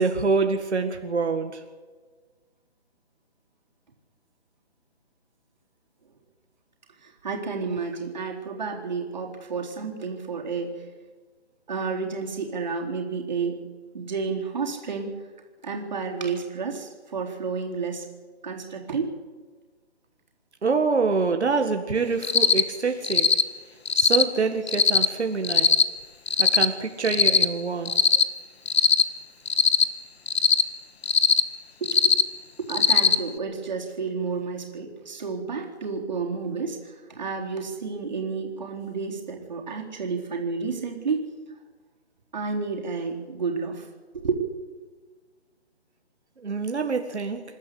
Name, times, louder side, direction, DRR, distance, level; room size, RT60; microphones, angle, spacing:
voice 1, 0.0-1.6 20.6-23.4 24.0-25.8 26.4-27.9 46.4-47.4, right 4 dB, 85° right, 6 dB, 1.9 m, -25 dB
voice 2, 7.0-10.9 11.7-13.7 13.9-15.1 15.6-18.1 18.4-19.1 27.9-28.0 31.8-32.2 32.6-41.2 42.3-43.9 44.1-44.5, right 5 dB, 40° right, 0 dB, 3.8 m, -31 dB
Cricket, 22.2-22.6 23.0-23.4 23.9-24.2 24.7-25.1 25.4-25.8 26.3-26.7 27.0-27.5 27.9-28.2 28.7-29.0 29.5-29.8 30.3-30.6 31.0-31.4 31.8-32.2 32.7-33.2, left 5 dB, 70° left, 1.5 m, -19 dB
26.5 x 12.5 x 8.5 m, 1.4 s
hypercardioid pair, 175°, 33 cm